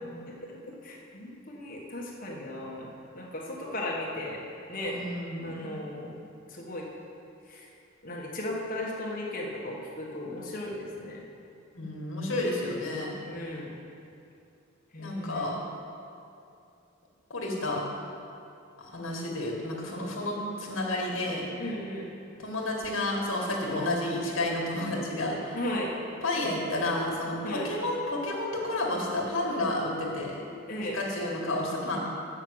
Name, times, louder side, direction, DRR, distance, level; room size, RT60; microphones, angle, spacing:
voice 1, 0.2-4.4 4.7-5.1 5.4-6.9 7.5-7.7 8.0-11.2 13.2-13.7 14.9-15.6 21.6-22.1 25.5-25.9 27.4-27.7 30.7-31.0, left 1 dB, 40° left, -3 dB, 1.4 m, -36 dB
voice 2, 4.9-5.7 11.7-13.1 15.0-15.6 17.3-17.8 18.8-21.4 22.4-25.6 26.2-30.4 30.9-32.0, left 1 dB, 70° left, -1 dB, 1.9 m, -31 dB
7.4 x 6.5 x 7.9 m, 2.6 s
head